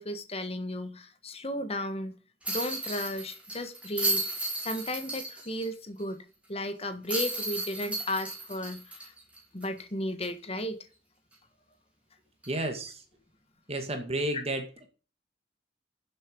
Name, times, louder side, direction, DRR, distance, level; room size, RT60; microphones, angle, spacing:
voice 1, 0.0-2.1 2.5-6.2 6.5-8.8 9.5-10.8, left 1 dB, 35° left, 1.4 m, -34 dB
sound 1, 2.4-5.7 6.0-6.1 7.1-9.8 10.2-10.3 12.4-12.6, right 2 dB, 5° right, 3.8 m, -34 dB
voice 2, 12.5-13.0 13.7-14.9, right 1 dB, 35° right, 2.1 m, -32 dB
10.5 x 7.6 x 5.2 m
head